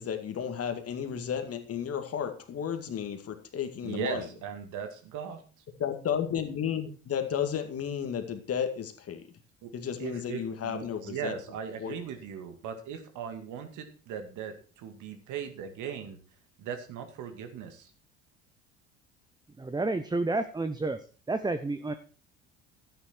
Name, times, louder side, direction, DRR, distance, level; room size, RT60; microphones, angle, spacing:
voice 1, 0.0-4.3 5.8-9.2 9.7-11.3 11.8-11.9, left 8 dB, 40° left, 7 dB, 2.2 m, -33 dB
voice 2, 3.8-5.4 9.6-9.7 10.0-16.2 16.6-17.9, right 7 dB, 55° right, 6 dB, 2.4 m, -38 dB
voice 3, 19.6-21.0 21.3-21.9, right 2 dB, 10° right, 10 dB, 0.9 m, -30 dB
12.5 x 9.7 x 4.5 m, 0.37 s
hypercardioid pair, 60°, 35 cm